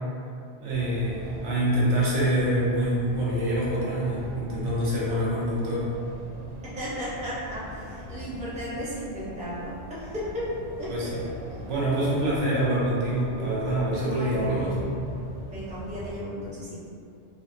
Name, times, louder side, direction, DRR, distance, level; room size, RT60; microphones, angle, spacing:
voice 1, 0.6-5.9 10.9-11.2 11.7-14.8, right 1 dB, 75° right, -7 dB, 1.1 m, -26 dB
sound 1, 0.7-16.2, left 1 dB, 50° right, 0.7 m, -41 dB
voice 2, 6.8-10.2 10.8-11.1 11.5-11.6 14.0-14.8 15.4-16.8, equal, 10° right, -11 dB, 0.6 m, -35 dB
3.9 x 2.2 x 2.5 m, 2.5 s
omnidirectional pair, 1.2 m